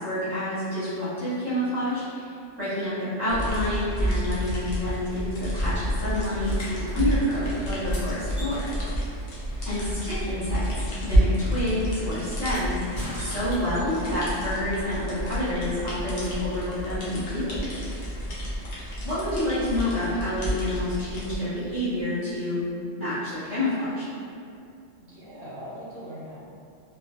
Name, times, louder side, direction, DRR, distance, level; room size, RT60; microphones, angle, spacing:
voice 1, 0.0-2.3 2.6-8.7 9.6-17.7 19.0-22.7 23.0-24.1, left 1 dB, 15° left, -14 dB, 0.6 m, -28 dB
sound 1, 3.3-21.4, equal, 60° left, 0.7 m, -30 dB
sound 2, 6.2-7.0 7.6-10.5 10.8-14.0 15.4-16.7 18.7-18.8, equal, 85° left, 1.2 m, -44 dB
voice 2, 9.3-9.8 18.2-18.5 25.0-26.4, equal, 65° right, -8 dB, 0.8 m, -42 dB
2.5 x 2.1 x 2.3 m, 2.5 s
omnidirectional pair, 1.3 m